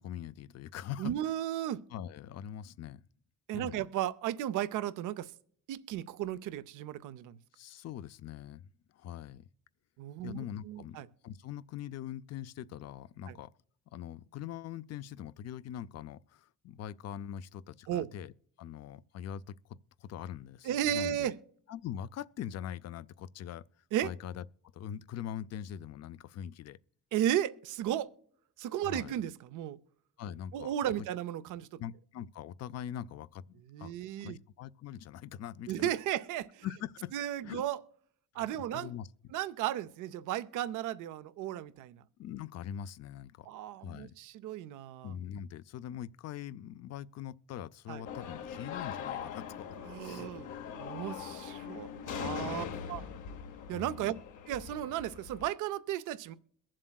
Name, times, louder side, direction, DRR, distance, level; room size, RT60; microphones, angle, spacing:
voice 1, 0.0-1.1 1.9-3.0 3.5-3.9 7.5-9.5 10.2-13.5 13.9-18.3 18.6-21.3 21.7-23.6 24.0-24.4 24.7-26.8 28.8-29.2 30.2-31.1 31.8-33.9 34.2-35.9 36.6-37.1 37.4-37.6 38.7-39.1 42.2-43.5 43.8-44.1 45.0-49.7 50.0-50.3 52.2-52.7 53.7-54.2, left 10 dB, 55° left, 0.5 m, -42 dB
voice 2, 1.0-1.8 3.5-5.3 5.7-7.4 10.0-11.1 13.3-13.4 17.9-18.1 20.6-21.4 23.9-24.1 27.1-28.1 28.6-29.8 30.5-31.7 33.7-34.4 35.7-36.7 37.1-37.8 38.3-38.9 39.3-42.0 43.5-45.1 47.9-48.0 49.9-50.5 50.8-53.0 53.7-54.2 54.5-56.3, right 11 dB, 85° right, 0.6 m, -35 dB
sound 1, 48.0-55.5, left 8 dB, 85° left, 1.0 m, -42 dB
22.5 x 7.5 x 2.3 m
cardioid pair, 90°, 30 cm